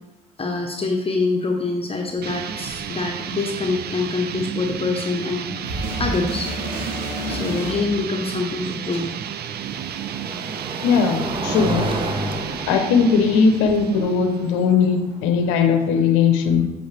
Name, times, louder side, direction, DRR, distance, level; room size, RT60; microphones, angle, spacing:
voice 1, 0.4-6.5 7.3-9.1, left 3 dB, 25° left, 2 dB, 1.0 m, -25 dB
sound 1, 2.1-2.2 2.5-2.9 4.8-4.9 7.9-16.0, right 1 dB, 25° right, 1.1 m, -32 dB
sound 2, 2.2-14.7, right 9 dB, 50° right, 0.5 m, -32 dB
sound 3, 5.6-8.2 9.1-9.2, right 1 dB, 80° right, 2.5 m, -29 dB
voice 2, 10.8-11.9 12.6-16.7, left 5 dB, 80° left, 7 dB, 0.7 m, -19 dB
7.9 x 5.1 x 3.3 m, 1.0 s
hypercardioid pair, 65°, 21 cm